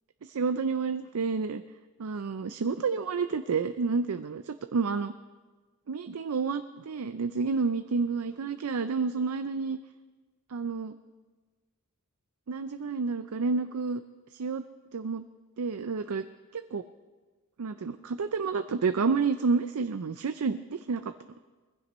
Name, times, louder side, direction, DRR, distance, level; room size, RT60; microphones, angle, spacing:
voice 1, 0.3-1.6 2.0-5.1 5.9-9.8 10.5-10.9 12.5-14.0 14.3-14.6 14.9-15.2 15.6-16.3 16.5-16.8 17.6-21.0, right 4 dB, 75° right, 10 dB, 0.5 m, -29 dB
21.5 x 15.5 x 3.1 m, 1.3 s
head